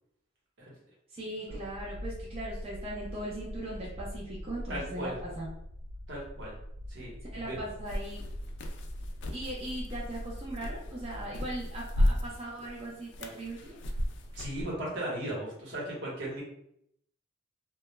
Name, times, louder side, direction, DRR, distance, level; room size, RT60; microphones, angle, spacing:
voice 1, 1.1-5.5 7.3-8.2 9.3-13.8, right 1 dB, 30° right, -5 dB, 0.5 m, -39 dB
sound 1, 1.5-12.4, equal, 85° right, 0.3 m, -43 dB
voice 2, 4.7-5.2 6.1-6.5 6.9-7.6 14.3-16.4, right 1 dB, 70° right, -4 dB, 1.0 m, -37 dB
sound 2, 7.9-14.6, left 1 dB, 65° left, 0.3 m, -34 dB
2.2 x 2.1 x 3.0 m, 0.75 s
head